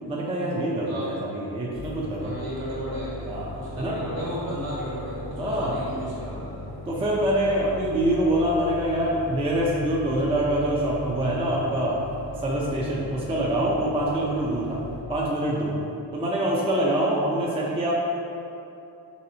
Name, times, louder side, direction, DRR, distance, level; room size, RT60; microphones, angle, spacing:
voice 1, 0.0-2.3 3.3-4.0 5.4-5.8 6.9-12.0 12.4-14.8 15.1-15.7 16.1-17.9, right 1 dB, 15° right, -4 dB, 0.3 m, -25 dB
sound 1, 1.7-15.0, left 2 dB, 40° left, 0.5 m, -39 dB
voice 2, 2.2-6.7, equal, 55° right, -7 dB, 1.4 m, -34 dB
4.2 x 3.2 x 2.7 m, 2.8 s
wide cardioid pair, 125°, 43 cm